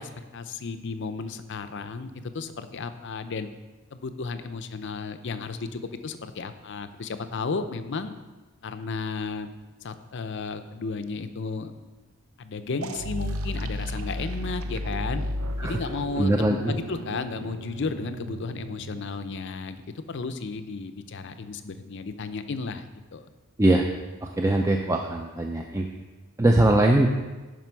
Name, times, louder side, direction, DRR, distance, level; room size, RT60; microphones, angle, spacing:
voice 1, 0.0-3.5 3.9-8.1 8.6-9.5 9.8-11.7 12.4-15.2 15.6-23.3, left 4 dB, 55° left, 10 dB, 0.5 m, -33 dB
sound 1, 12.8-19.4, equal, 70° right, 0.6 m, -34 dB
voice 2, 16.2-16.7 23.6-23.9 24.2-25.9 26.4-27.1, right 1 dB, 15° right, 2 dB, 0.4 m, -21 dB
11.0 x 5.1 x 4.6 m, 1.2 s
head